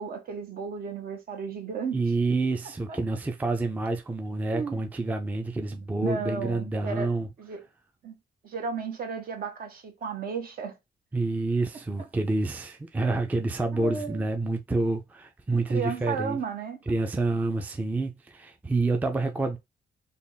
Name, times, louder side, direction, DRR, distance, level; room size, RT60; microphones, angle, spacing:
voice 1, 0.0-2.0 2.9-3.0 4.5-4.8 6.0-7.1 7.4-7.6 8.0-8.2 8.4-10.7 13.7-14.2 15.6-16.8, right 5 dB, 60° right, 1.0 m, -34 dB
voice 2, 1.9-7.3 11.1-16.4 16.9-19.6, right 3 dB, 10° right, 0.4 m, -28 dB
3.4 x 2.4 x 3.8 m
wide cardioid pair, 140°, 17 cm